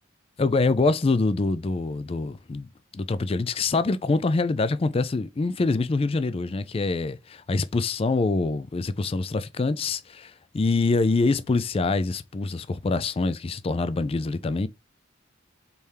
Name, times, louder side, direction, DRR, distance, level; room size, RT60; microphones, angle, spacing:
voice 1, 0.4-2.7 2.9-14.7, left 3 dB, 30° left, 0.3 m, -25 dB
4.2 x 3.5 x 3.3 m
head